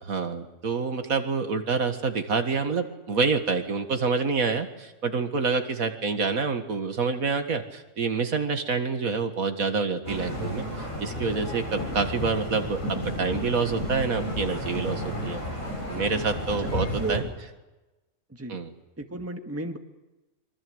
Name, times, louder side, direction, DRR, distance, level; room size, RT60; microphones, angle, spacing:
voice 1, 0.0-12.8 13.2-15.4 15.9-17.2 18.5-18.7, right 4 dB, 70° right, 7 dB, 2.1 m, -27 dB
sound 1, 10.0-17.2, equal, 60° left, 8.1 m, -32 dB
voice 2, 19.0-19.8, right 3 dB, 10° right, 5 dB, 1.7 m, -33 dB
25.0 x 24.0 x 7.9 m, 1.1 s
omnidirectional pair, 1.5 m